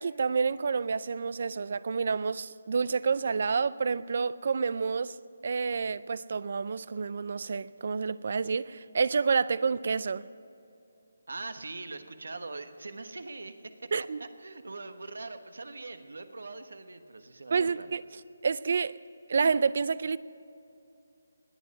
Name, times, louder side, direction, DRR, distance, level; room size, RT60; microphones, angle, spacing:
voice 1, 0.0-5.2 5.4-10.3 13.9-14.2 17.5-18.0 18.4-19.0 19.3-20.2, right 5 dB, 45° right, 0.4 m, -29 dB
voice 2, 11.3-13.7 14.2-17.9, right 3 dB, 85° right, 1.2 m, -42 dB
20.0 x 7.6 x 9.4 m
hypercardioid pair, 170°, 0 cm